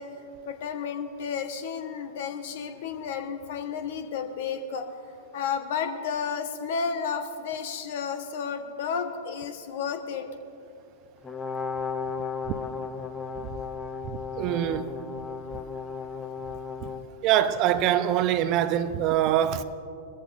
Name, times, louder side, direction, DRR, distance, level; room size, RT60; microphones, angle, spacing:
voice 1, 0.0-4.9 5.3-10.3, left 6 dB, 55° left, 1.4 m, -32 dB
Brass instrument, 11.2-17.1, left 5 dB, 15° left, 0.9 m, -34 dB
voice 2, 14.3-14.9 16.8-16.9 17.2-19.6, right 11 dB, 40° right, 0.7 m, -24 dB
22.5 x 14.0 x 2.7 m
figure-of-eight pair, 100°, 0 cm